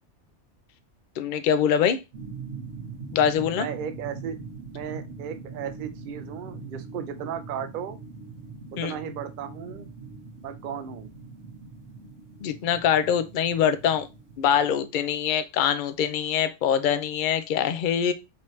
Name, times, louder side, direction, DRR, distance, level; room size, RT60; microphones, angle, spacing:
voice 1, 1.2-2.0 3.1-3.7 8.8-9.0 12.4-14.1 14.4-18.1, left 8 dB, 55° left, 0.6 m, -24 dB
sound 1, 2.1-14.7, right 4 dB, 75° right, 1.3 m, -42 dB
voice 2, 3.6-4.4 4.7-8.0 8.7-9.9 10.4-11.1, right 8 dB, 55° right, 0.6 m, -35 dB
5.2 x 2.8 x 3.1 m
omnidirectional pair, 1.2 m